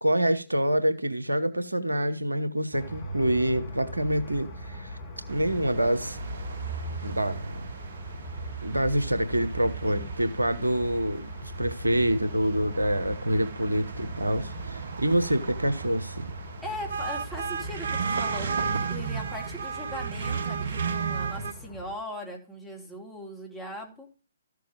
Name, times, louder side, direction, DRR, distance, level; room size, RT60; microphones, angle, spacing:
voice 1, 0.0-5.0 5.3-6.2 7.0-7.6 8.6-16.3, right 1 dB, 85° right, 1.1 m, -26 dB
sound 1, 2.7-22.0, right 1 dB, 30° left, 2.7 m, -40 dB
sound 2, 5.3-21.5, right 6 dB, 55° right, 1.0 m, -35 dB
voice 2, 16.6-24.1, left 1 dB, 5° left, 3.1 m, -39 dB
14.0 x 6.7 x 5.2 m
figure-of-eight pair, 130°, 0 cm